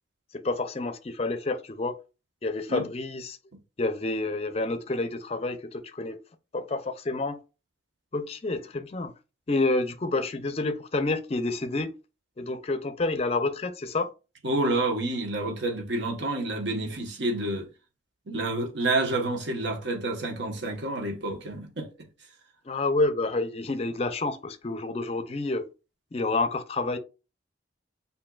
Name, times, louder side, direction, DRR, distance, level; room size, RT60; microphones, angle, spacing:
voice 1, 0.3-2.0 2.4-3.4 3.8-6.2 6.5-7.4 8.1-9.1 9.5-11.9 12.4-14.1 22.7-25.7 26.1-27.0, left 2 dB, 35° left, 0.5 m, -29 dB
voice 2, 14.4-17.7 18.3-21.9, right 2 dB, 70° right, 1.1 m, -29 dB
7.2 x 2.7 x 2.3 m
head